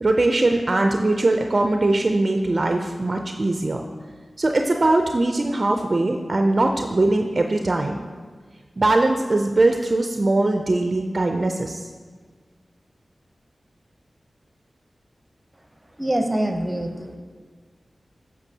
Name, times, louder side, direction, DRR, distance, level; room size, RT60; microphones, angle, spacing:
voice 1, 0.0-3.8 4.4-8.0 8.8-11.8, right 2 dB, 50° right, 4 dB, 0.4 m, -21 dB
voice 2, 16.0-17.2, right 1 dB, 20° right, 5 dB, 0.7 m, -24 dB
8.0 x 6.4 x 2.8 m, 1.5 s
cardioid pair, 40°, 0 cm